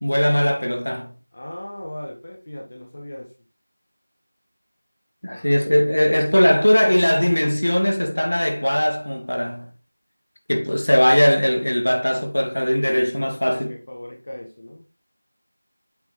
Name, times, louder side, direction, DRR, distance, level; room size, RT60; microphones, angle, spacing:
voice 1, 0.0-1.1 5.2-9.7 10.5-13.8, equal, 75° left, 2.0 m, -19 dB
voice 2, 1.3-3.3 5.2-6.0 12.1-12.2 12.5-13.1 13.5-14.8, left 1 dB, 30° left, 1.4 m, -38 dB
8.1 x 5.3 x 3.1 m
figure-of-eight pair, 175°, 0 cm